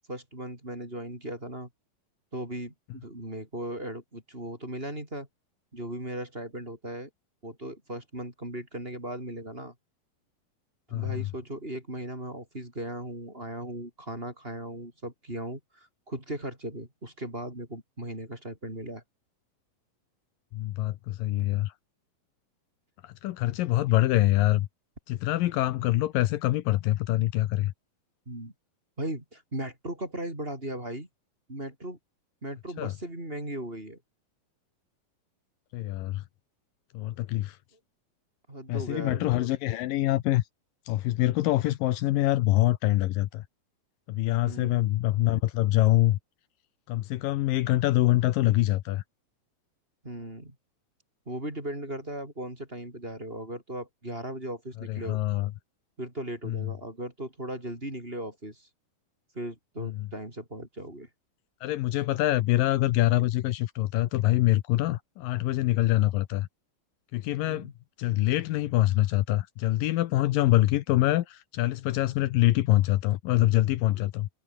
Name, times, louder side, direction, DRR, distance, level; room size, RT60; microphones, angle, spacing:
voice 1, 0.1-1.7 2.3-5.3 5.7-7.1 7.4-9.7 10.9-19.0 28.3-28.5 29.0-31.1 31.5-32.0 32.4-34.0 38.5-39.5 44.4-44.8 50.0-50.6 51.3-55.2 56.0-58.7 59.3-61.1 67.4-67.7, right 1 dB, 15° right, 5.7 m, -37 dB
voice 2, 10.9-11.3 20.5-21.7 23.0-24.7 25.1-27.7 32.8-32.9 35.7-36.2 36.9-37.6 38.7-40.5 40.9-43.4 44.1-46.2 46.9-49.0 54.9-55.5 56.4-56.7 59.8-60.1 61.6-66.5 67.1-67.7 68.0-74.3, left 16 dB, 80° left, 2.5 m, -25 dB
omnidirectional pair, 4.1 m